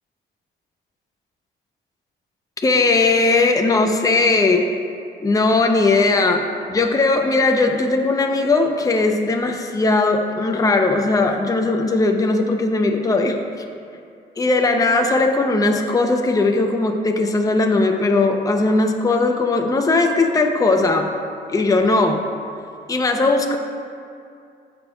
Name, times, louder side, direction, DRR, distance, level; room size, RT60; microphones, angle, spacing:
voice 1, 2.6-4.6 5.2-13.4 14.4-21.1 21.5-22.2 22.9-23.6, left 3 dB, 15° left, 4 dB, 0.6 m, -18 dB
13.0 x 5.4 x 2.3 m, 2.4 s
cardioid pair, 90°, 20 cm